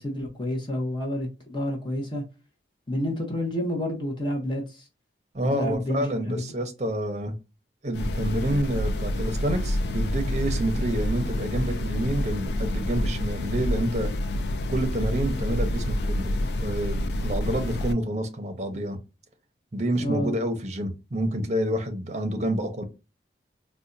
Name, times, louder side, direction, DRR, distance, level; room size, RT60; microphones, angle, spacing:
voice 1, 0.0-2.2 2.9-4.8 5.4-6.5 20.0-20.3, equal, 25° left, 0.8 m, -29 dB
voice 2, 5.3-7.3 7.8-14.1 14.7-16.3 16.6-19.0 19.7-22.8, right 1 dB, 40° right, 0.6 m, -28 dB
sound 1, 7.9-17.9, left 1 dB, 65° left, 0.3 m, -28 dB
4.1 x 2.2 x 2.6 m
head